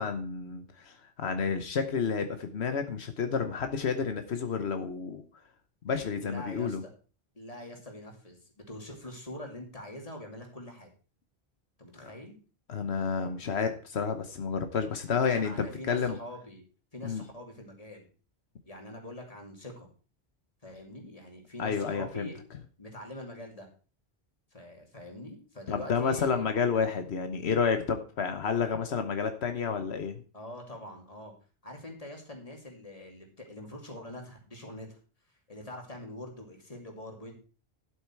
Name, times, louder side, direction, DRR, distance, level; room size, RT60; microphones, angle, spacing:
voice 1, 0.0-5.2 5.8-6.8 12.0-12.1 12.7-16.2 17.0-17.2 21.6-22.3 25.7-30.2, left 6 dB, 85° left, 7 dB, 1.3 m, -30 dB
voice 2, 6.2-6.8 7.3-10.9 11.8-12.4 15.1-16.6 16.9-18.1 18.6-19.9 20.6-22.4 22.8-23.7 24.5-26.5 30.3-31.3 31.6-35.0 35.5-37.4, left 1 dB, 35° left, 1 dB, 2.7 m, -44 dB
11.5 x 8.1 x 4.5 m, 0.37 s
omnidirectional pair, 1.1 m